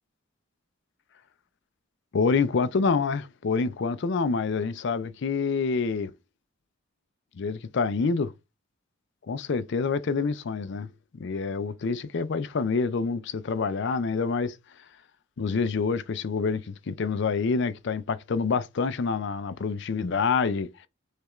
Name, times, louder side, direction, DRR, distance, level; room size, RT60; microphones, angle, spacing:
voice 1, 2.1-6.1 7.4-8.3 9.3-10.9 11.2-14.6 15.4-20.7, left 4 dB, 55° left, 0.4 m, -27 dB
6.5 x 2.4 x 3.1 m
head